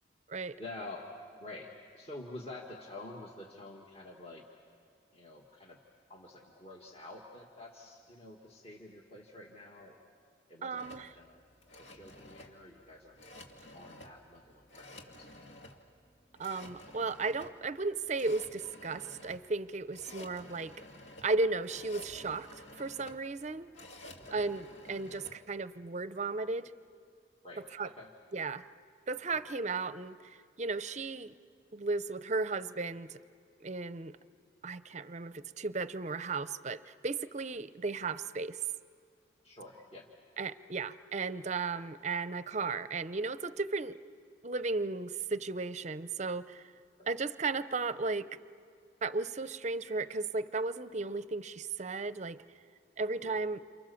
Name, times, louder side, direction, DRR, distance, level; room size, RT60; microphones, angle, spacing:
voice 1, 0.6-1.1 1.4-4.4 5.1-5.8 6.1-10.0 10.5-11.4 11.8-13.4 13.7-15.8 23.4-23.6 24.1-24.4 27.4-28.1 29.3-29.4 39.4-40.1 47.0-47.1 53.2-53.4, left 2 dB, 30° left, -1 dB, 1.9 m, -49 dB
voice 2, 10.6-11.1 16.4-20.7 21.2-22.5 22.8-23.7 24.3-26.7 27.8-27.9 28.3-28.7 29.1-31.3 31.7-33.2 33.6-34.2 34.6-38.6 40.4-44.0 44.4-46.6 47.1-48.3 49.0-52.4 53.0-53.6, right 3 dB, 35° right, 14 dB, 0.6 m, -35 dB
sound 1, 10.8-25.4, left 1 dB, 75° left, 2.3 m, -52 dB
29.0 x 28.5 x 7.1 m, 2.2 s
head